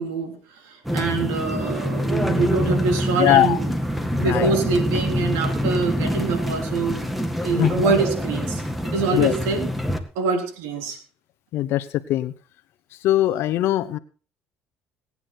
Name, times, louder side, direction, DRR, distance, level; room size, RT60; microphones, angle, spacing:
voice 1, 0.0-3.6 4.2-7.1 7.4-9.7 10.2-11.0, right 4 dB, 85° right, 4 dB, 3.5 m, -25 dB
sound 1, 0.8-10.0, equal, ahead, 1.8 m, -25 dB
voice 2, 3.2-3.6 4.2-4.5 7.6-7.7 9.1-9.3 11.5-12.3 13.0-14.0, left 14 dB, 65° left, 12 dB, 0.8 m, -21 dB
18.5 x 9.6 x 4.4 m, 0.37 s
cardioid pair, 105°, 4 cm